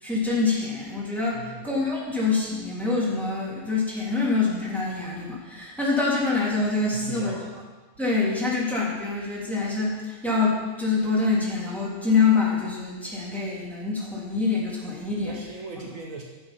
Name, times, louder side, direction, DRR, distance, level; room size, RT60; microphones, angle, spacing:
voice 1, 0.0-7.3 8.0-15.4 15.8-15.9, left 4 dB, ahead, -6 dB, 2.8 m, -25 dB
voice 2, 1.3-1.7 6.9-7.5 15.2-16.2, right 3 dB, 65° right, 0 dB, 1.5 m, -38 dB
11.0 x 7.0 x 5.7 m, 1.3 s
omnidirectional pair, 1.5 m